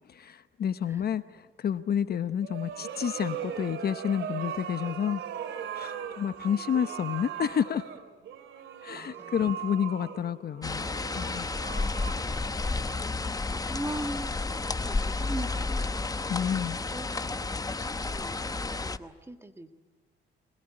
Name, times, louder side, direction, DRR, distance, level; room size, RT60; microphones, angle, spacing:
voice 1, 0.1-5.2 5.7-7.8 8.8-10.9 11.1-11.5 16.3-16.8, left 8 dB, 50° left, 12 dB, 0.9 m, -30 dB
sound 1, 2.4-13.4, right 9 dB, 80° right, 2.8 m, -39 dB
voice 2, 8.9-9.5 11.7-12.4 13.1-14.3 14.6-16.2 16.9-19.7, right 1 dB, 10° right, 7 dB, 1.9 m, -41 dB
sound 2, 10.6-19.0, left 3 dB, 20° left, 0.9 m, -31 dB
26.5 x 21.5 x 9.9 m, 1.4 s
cardioid pair, 90°, 20 cm